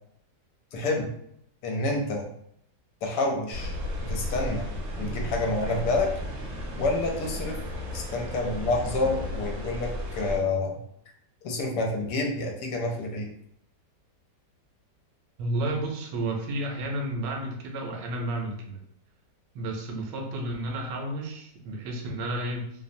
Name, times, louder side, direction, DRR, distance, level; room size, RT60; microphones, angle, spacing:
voice 1, 0.7-1.1 1.6-2.3 3.0-3.7 4.0-4.7 5.0-6.1 6.7-7.6 7.9-10.8 11.4-13.3, left 2 dB, 75° left, 1 dB, 1.2 m, -28 dB
sound 1, 3.5-10.4, left 1 dB, 70° right, 0.7 m, -34 dB
voice 2, 15.4-18.8 19.5-22.7, right 1 dB, 90° right, 1 dB, 1.3 m, -31 dB
3.1 x 2.0 x 2.5 m, 0.73 s
omnidirectional pair, 1.9 m